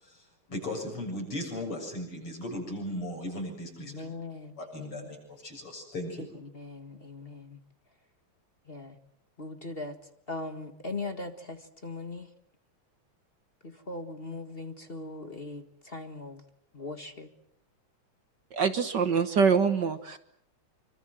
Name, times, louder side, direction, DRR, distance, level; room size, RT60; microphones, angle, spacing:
voice 1, 0.0-4.1 4.6-6.3, left 1 dB, 80° left, 2 dB, 8.2 m, -37 dB
voice 2, 3.8-5.1 6.5-7.6 8.7-8.9 9.4-10.0 10.3-12.3 13.6-16.4 16.7-17.3, left 2 dB, 30° left, 8 dB, 1.6 m, -40 dB
voice 3, 18.5-20.2, right 6 dB, 55° right, 11 dB, 1.7 m, -24 dB
27.0 x 25.0 x 7.8 m, 0.70 s
omnidirectional pair, 2.4 m